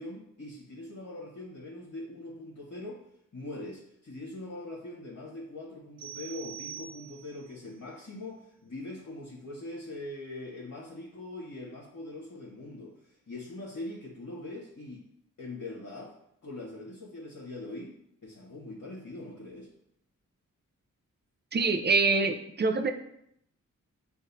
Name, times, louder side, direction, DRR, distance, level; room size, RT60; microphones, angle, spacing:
voice 1, 0.0-3.0 3.3-15.0 15.4-16.2 16.4-17.9 18.2-19.7, left 2 dB, 55° left, -5 dB, 1.2 m, -42 dB
sound 1, 6.0-7.5, right 9 dB, 85° right, 1.1 m, -44 dB
voice 2, 21.5-22.9, right 3 dB, 30° right, 7 dB, 0.5 m, -25 dB
6.2 x 2.5 x 2.6 m, 0.74 s
cardioid pair, 45°, 32 cm